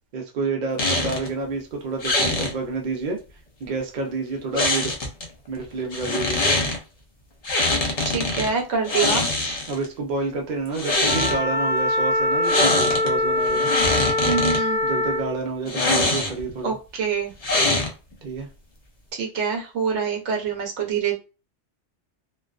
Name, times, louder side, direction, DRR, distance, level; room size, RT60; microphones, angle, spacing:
voice 1, 0.1-3.2 3.6-4.9 5.5-6.4 9.7-13.7 14.8-16.8 18.2-18.5, right 3 dB, 50° right, 1 dB, 0.6 m, -29 dB
sound 1, 0.8-1.3 2.0-2.5 4.5-5.2 5.9-6.8 7.4-8.5 8.8-9.8 10.7-11.4 12.4-13.1 13.4-14.6 15.7-16.5 17.4-18.1, left 2 dB, 45° left, 0.6 m, -23 dB
voice 2, 8.1-9.2 14.2-14.8 16.6-17.3 19.2-21.1, right 6 dB, 80° right, 1 dB, 1.0 m, -25 dB
Wind instrument woodwind instrument, 11.0-15.3, left 1 dB, 90° left, 0.9 m, -23 dB
2.4 x 2.2 x 2.3 m, 0.32 s
omnidirectional pair, 1.2 m